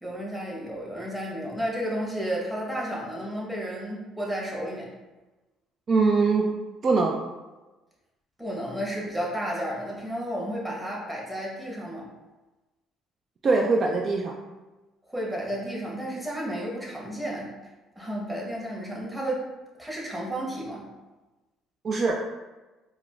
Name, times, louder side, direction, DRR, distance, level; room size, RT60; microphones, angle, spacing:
voice 1, 0.0-4.9 8.4-12.1 15.1-17.5 17.9-19.4 19.8-20.9, equal, 5° right, -4 dB, 1.1 m, -32 dB
voice 2, 5.9-6.5 6.8-7.2 13.4-14.3 21.8-22.2, right 4 dB, 45° right, 1 dB, 0.3 m, -22 dB
4.6 x 2.0 x 2.4 m, 1.1 s
supercardioid pair, 75°, 0 cm